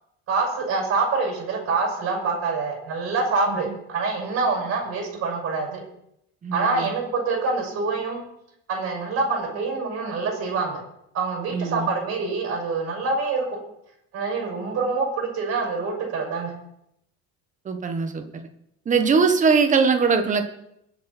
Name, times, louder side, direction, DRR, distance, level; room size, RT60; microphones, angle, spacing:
voice 1, 0.3-5.8 6.5-8.2 8.7-10.8 11.1-13.6 14.1-16.5, right 4 dB, 45° right, -1 dB, 6.6 m, -26 dB
voice 2, 6.4-6.9 11.5-11.9 17.6-18.4 18.8-20.4, right 5 dB, 25° right, 6 dB, 1.4 m, -21 dB
22.0 x 8.0 x 4.5 m, 0.78 s
cardioid pair, 170°, 32 cm